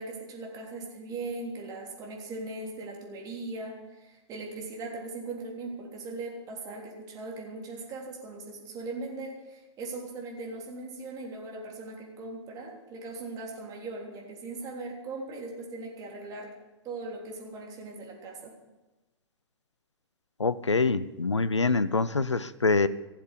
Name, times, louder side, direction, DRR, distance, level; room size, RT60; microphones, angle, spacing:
voice 1, 0.0-16.5 16.8-18.5, right 3 dB, 25° right, -2 dB, 3.4 m, -39 dB
voice 2, 20.4-22.9, left 3 dB, 85° left, 17 dB, 0.5 m, -25 dB
16.0 x 7.5 x 6.5 m, 1.1 s
figure-of-eight pair, 110°, 15 cm